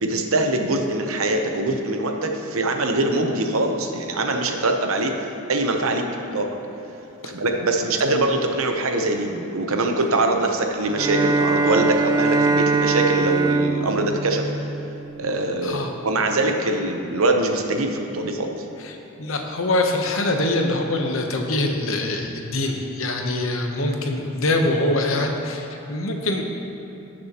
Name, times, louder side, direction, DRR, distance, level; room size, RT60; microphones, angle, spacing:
voice 1, 0.0-5.2 5.5-6.0 6.3-6.6 7.2-14.5 15.2-18.5, right 2 dB, 80° right, 4 dB, 0.9 m, -23 dB
Bowed string instrument, 10.9-15.4, right 3 dB, 20° right, 0.4 m, -22 dB
voice 2, 19.2-26.4, left 2 dB, 70° left, 3 dB, 0.9 m, -24 dB
16.5 x 6.5 x 3.0 m, 2.8 s
head